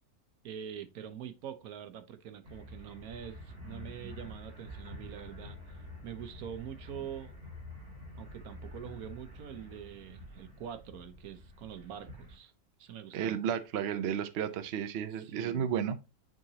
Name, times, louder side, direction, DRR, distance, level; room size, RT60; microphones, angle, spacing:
voice 1, 0.4-5.8 6.0-7.3 8.2-12.5 12.8-13.5 15.2-15.7, right 9 dB, 75° right, 1.2 m, -45 dB
sound 1, 2.4-12.4, left 1 dB, 40° right, 2.0 m, -48 dB
voice 2, 13.1-16.1, right 8 dB, 60° right, 0.8 m, -33 dB
9.1 x 3.8 x 2.8 m
omnidirectional pair, 1.5 m